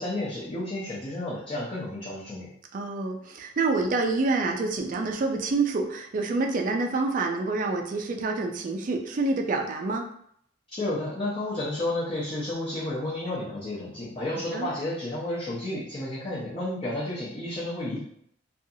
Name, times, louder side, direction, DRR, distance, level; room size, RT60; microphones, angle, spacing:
voice 1, 0.0-2.5 10.7-18.0, left 1 dB, 30° left, -8 dB, 0.6 m, -31 dB
voice 2, 2.7-10.1 14.5-14.7, right 3 dB, 45° right, 3 dB, 0.3 m, -27 dB
2.6 x 2.3 x 2.6 m, 0.69 s
head